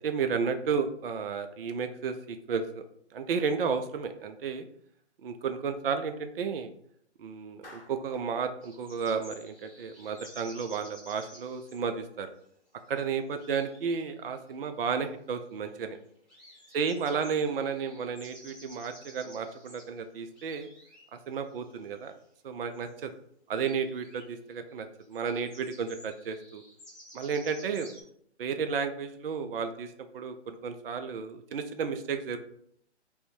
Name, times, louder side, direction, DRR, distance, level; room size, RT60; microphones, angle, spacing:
voice 1, 0.0-2.8 3.1-4.6 5.2-6.7 7.2-12.3 12.9-16.0 16.7-20.7 21.1-22.1 22.4-23.1 23.5-26.6 27.1-27.9 28.4-32.4, right 6 dB, 55° right, 8 dB, 0.4 m, -32 dB
Clapping, 7.6-8.3, left 2 dB, 50° left, 1.4 m, -51 dB
sound 1, 8.6-11.9 12.9-13.0 13.1-14.1 14.4-14.5 14.8-14.9 15.4-16.0 16.3-19.9 20.2-21.0 21.3-22.2 22.5-23.0 23.5-24.2 24.7-24.8 25.0-28.0, equal, 5° left, 1.2 m, -53 dB
3.4 x 2.6 x 4.2 m, 0.67 s
figure-of-eight pair, 145°, 35 cm